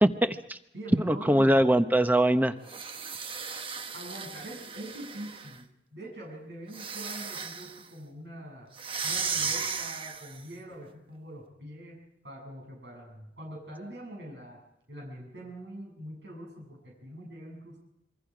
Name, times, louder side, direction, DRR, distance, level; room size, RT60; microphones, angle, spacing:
voice 1, 0.0-0.6 1.0-2.5, right 1 dB, 10° right, 10 dB, 0.9 m, -22 dB
voice 2, 0.7-1.6 3.9-8.7 9.0-14.6 14.9-17.8, right 1 dB, 80° right, -1 dB, 7.8 m, -43 dB
sound 1, 2.6-5.6 6.7-7.9 8.8-10.5, right 5 dB, 30° right, 1.1 m, -35 dB
27.0 x 23.5 x 5.1 m, 0.79 s
head